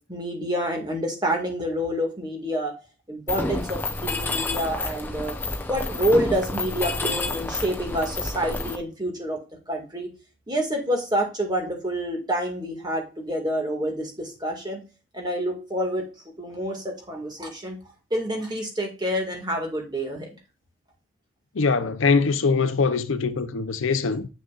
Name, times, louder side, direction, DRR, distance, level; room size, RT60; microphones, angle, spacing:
voice 1, 0.1-2.7 3.1-5.3 5.6-9.4 9.7-10.1 10.5-14.8 15.1-16.1 16.4-17.8 18.1-20.4, equal, 20° right, 2.0 m, -27 dB
Mechanisms, 3.3-8.7, left 2 dB, 10° left, 0.6 m, -29 dB
voice 2, 21.6-24.3, left 4 dB, 75° left, 0.7 m, -22 dB
7.9 x 6.3 x 2.4 m
head